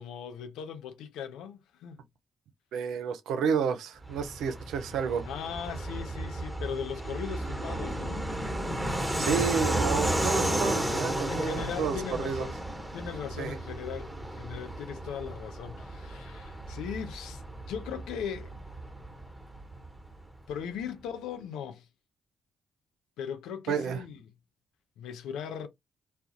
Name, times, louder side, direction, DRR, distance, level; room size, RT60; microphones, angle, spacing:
voice 1, 0.0-2.0 5.2-8.3 11.3-12.6 12.9-18.6 20.5-21.9 23.2-24.2 25.0-25.7, left 8 dB, 80° left, 0.5 m, -39 dB
voice 2, 2.7-5.3 9.2-12.5 13.4-13.6 23.7-24.0, right 6 dB, 75° right, 0.5 m, -30 dB
Fixed-wing aircraft airplane, 4.0-20.2, right 1 dB, 10° right, 1.0 m, -33 dB
2.4 x 2.2 x 2.7 m
hypercardioid pair, 45°, 0 cm